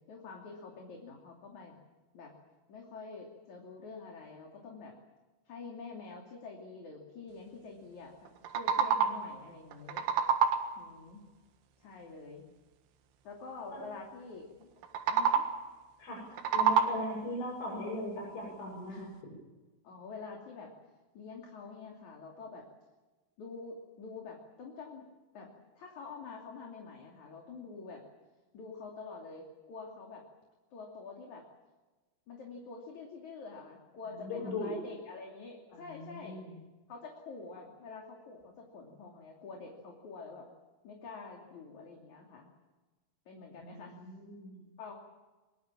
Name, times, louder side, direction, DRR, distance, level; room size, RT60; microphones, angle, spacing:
voice 1, 0.1-1.8 2.1-2.3 2.7-5.0 5.5-8.3 8.5-10.0 10.8-11.2 11.8-12.4 13.2-14.7 15.1-15.5 18.9-19.2 19.8-20.7 21.1-22.6 23.4-25.1 25.3-25.5 25.8-28.0 28.5-30.2 30.7-31.4 32.3-36.4 36.9-40.5 40.8-42.5 43.3-44.0 44.8-44.9, left 4 dB, 45° left, 0 dB, 3.8 m, -47 dB
sound 1, 8.3-9.4 9.7-10.9 14.8-15.7 16.2-17.3, right 7 dB, 90° right, 4.1 m, -28 dB
voice 2, 16.5-19.1 34.1-34.7 35.7-36.5 43.6-44.5, left 1 dB, 85° left, -5 dB, 10.5 m, -39 dB
23.5 x 23.5 x 7.5 m, 1.2 s
omnidirectional pair, 5.3 m